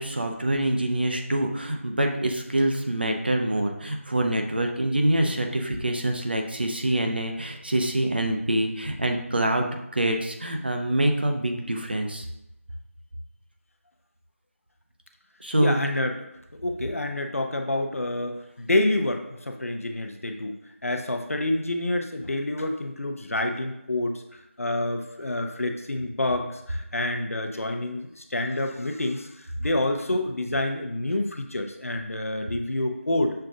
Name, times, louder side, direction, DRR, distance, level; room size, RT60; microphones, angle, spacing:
voice 1, 0.0-12.3 15.4-15.8, right 1 dB, 45° right, 3 dB, 0.5 m, -25 dB
voice 2, 15.6-16.3 16.6-20.6 20.8-24.2 24.6-33.3, left 1 dB, 75° left, 5 dB, 0.6 m, -28 dB
6.4 x 2.4 x 2.6 m, 0.85 s
figure-of-eight pair, 175°, 8 cm